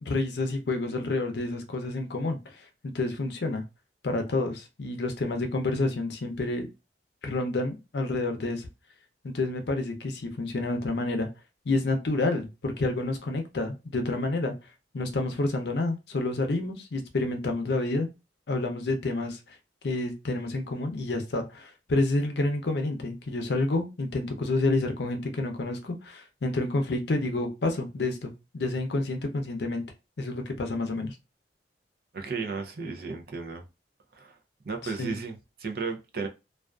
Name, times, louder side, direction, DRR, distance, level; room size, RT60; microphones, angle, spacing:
voice 1, 0.0-3.6 4.0-6.7 7.2-8.7 9.2-11.3 11.7-14.5 14.9-18.1 18.5-19.4 19.8-29.8 30.2-31.2 34.8-35.2, left 2 dB, 65° left, 0.6 m, -29 dB
voice 2, 32.1-33.6 34.1-34.4 34.7-36.3, right 4 dB, 55° right, 0.5 m, -34 dB
2.4 x 2.3 x 2.2 m
head